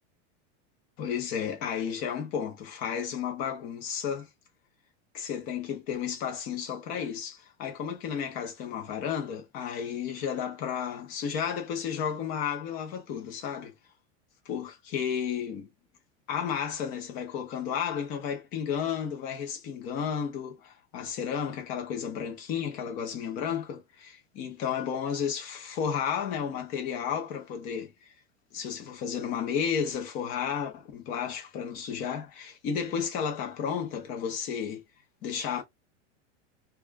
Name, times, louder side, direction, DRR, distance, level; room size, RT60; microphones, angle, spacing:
voice 1, 1.0-4.3 5.1-13.7 14.5-15.7 16.3-28.1 28.5-34.8 35.2-35.6, left 7 dB, 20° left, 0.5 m, -32 dB
2.4 x 2.2 x 3.2 m
supercardioid pair, 175°, 37 cm